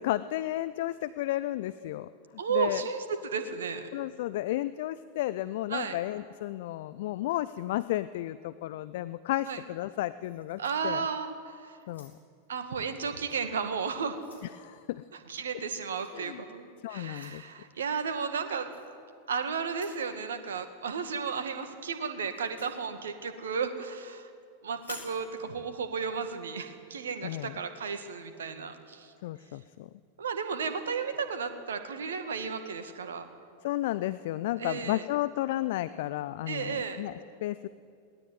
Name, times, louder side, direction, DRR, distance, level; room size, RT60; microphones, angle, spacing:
voice 1, 0.0-2.1 2.5-2.8 3.9-11.1 11.9-12.1 14.6-15.0 16.1-16.4 16.8-17.4 27.2-27.6 29.2-29.9 33.6-37.7, left 15 dB, 55° left, 15 dB, 0.6 m, -33 dB
voice 2, 2.4-3.9 5.7-6.0 9.4-9.6 10.6-11.8 12.5-14.2 15.3-18.8 19.3-24.3 24.6-29.1 30.2-33.3 34.6-35.1 36.5-37.0, right 6 dB, 70° right, 8 dB, 2.0 m, -34 dB
sound 1, 10.2-11.4 11.8-12.4 13.2-13.4 13.8-14.6 16.0-16.2 17.1-17.4 18.7-18.9 19.7-20.1 22.3-22.8 24.7-25.2, left 4 dB, 75° left, 4.1 m, -50 dB
21.5 x 18.0 x 9.4 m, 2.3 s
figure-of-eight pair, 90°, 0 cm